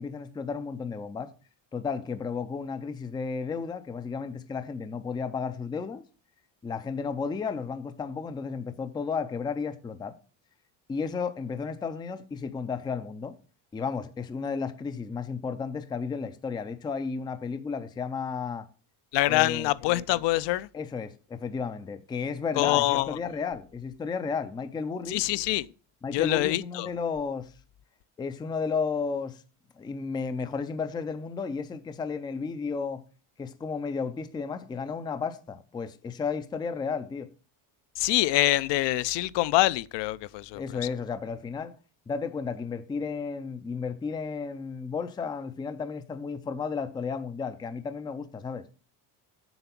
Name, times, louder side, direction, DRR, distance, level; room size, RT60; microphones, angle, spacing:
voice 1, 0.0-1.3 1.7-6.0 6.6-10.2 10.9-13.4 13.7-18.7 19.3-19.7 20.7-25.2 26.0-27.5 28.2-29.4 29.8-33.0 33.4-37.3 40.5-41.8 42.1-48.6, left 5 dB, 10° left, 0.3 m, -33 dB
voice 2, 19.1-20.7 22.6-23.2 25.1-25.7 26.1-26.9 38.0-40.8, left 17 dB, 60° left, 0.5 m, -25 dB
8.0 x 6.8 x 5.8 m
cardioid pair, 155°, 49 cm